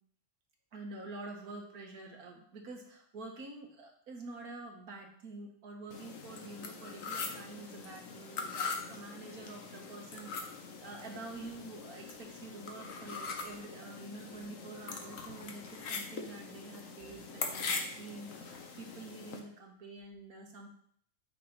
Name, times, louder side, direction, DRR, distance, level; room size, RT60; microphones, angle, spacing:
voice 1, 0.7-20.7, right 2 dB, 75° right, 1 dB, 2.0 m, -47 dB
sound 1, 5.9-19.4, left 4 dB, 65° left, 1.4 m, -42 dB
8.5 x 5.9 x 4.0 m, 0.64 s
omnidirectional pair, 1.6 m